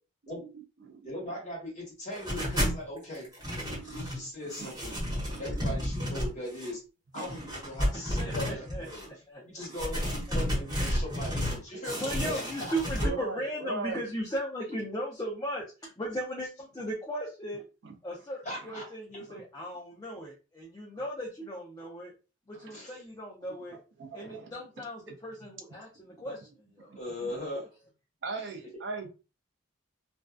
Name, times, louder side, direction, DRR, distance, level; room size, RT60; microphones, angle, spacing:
voice 1, 0.5-1.1 2.4-2.5 3.6-4.1 4.6-5.0 5.3-5.6 7.1-7.5 8.3-8.6 9.1-9.2 13.0-14.0 17.8-17.9 18.5-18.8 19.3-19.4 22.5-22.8 24.0-24.5 26.9-27.0 27.2-27.3 28.2-29.1, right 4 dB, 55° right, 0.4 m, -40 dB
voice 2, 1.0-3.3 3.7-4.9 5.4-6.8 7.1-9.1 9.4-12.4 18.4-18.9 22.7-22.9 27.0-27.7, left 1 dB, 35° left, 1.2 m, -39 dB
sound 1, 2.1-2.8 3.1-4.2 4.5-6.7 7.1-9.1 9.6-11.6 11.8-13.1, equal, 20° right, 1.0 m, -32 dB
voice 3, 7.9-8.9 9.3-10.4 10.8-10.9 12.0-17.6 18.0-22.1 22.5-23.8 24.1-26.5 26.7-27.0, equal, 20° left, 0.5 m, -37 dB
2.5 x 2.2 x 2.2 m
head